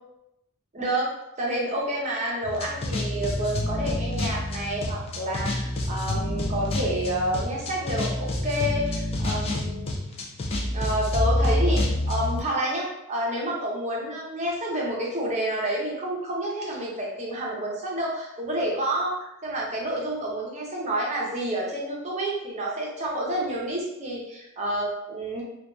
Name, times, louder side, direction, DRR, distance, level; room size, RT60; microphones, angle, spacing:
voice 1, 0.7-1.1 1.4-9.9 10.7-25.4, right 1 dB, 30° right, -4 dB, 0.6 m, -29 dB
sound 1, 2.4-12.4, left 1 dB, 25° left, 0.3 m, -28 dB
2.5 x 2.2 x 2.3 m, 0.87 s
head